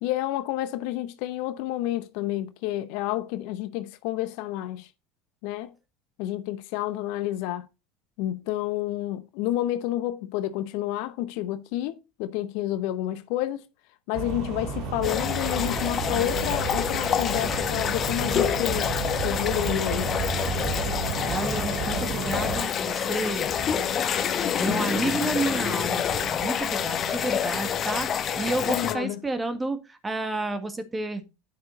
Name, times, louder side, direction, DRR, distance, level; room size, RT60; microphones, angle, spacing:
voice 1, 0.0-4.9 5.4-5.7 6.2-7.6 8.2-13.6 14.1-18.9 19.2-20.1 28.7-29.2, left 14 dB, 60° left, 0.7 m, -29 dB
sound 1, 14.1-22.6, right 4 dB, 55° right, 2.3 m, -32 dB
sound 2, 15.0-28.9, left 8 dB, 40° left, 1.0 m, -27 dB
voice 2, 21.3-31.2, right 2 dB, 15° right, 1.7 m, -31 dB
9.6 x 6.2 x 4.0 m
figure-of-eight pair, 75°, 0 cm